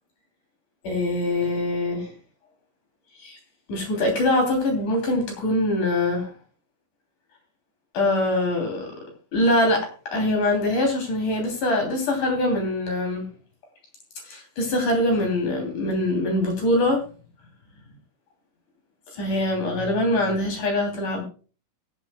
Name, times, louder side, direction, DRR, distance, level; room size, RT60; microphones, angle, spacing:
voice 1, 0.8-2.1 3.2-3.4 3.7-6.3 7.9-8.9 9.3-13.3 14.3-17.0 19.1-21.2, left 1 dB, 70° left, 2 dB, 4.6 m, -23 dB
22.0 x 8.6 x 2.3 m, 0.36 s
omnidirectional pair, 3.8 m